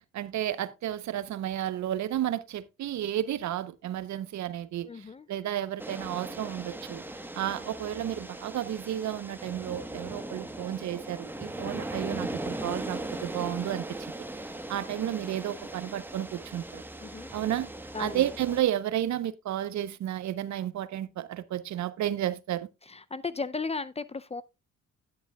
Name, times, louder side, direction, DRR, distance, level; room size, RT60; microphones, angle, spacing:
voice 1, 0.0-7.0 7.3-14.0 14.7-16.8 17.3-17.7 18.0-22.7, right 11 dB, 70° right, 0.8 m, -32 dB
voice 2, 4.8-5.3 17.0-17.3 17.9-18.2 22.9-24.4, left 4 dB, 20° left, 0.4 m, -35 dB
sound 1, 5.8-18.6, right 1 dB, 5° right, 1.1 m, -39 dB
11.0 x 10.0 x 2.3 m
cardioid pair, 90°, 30 cm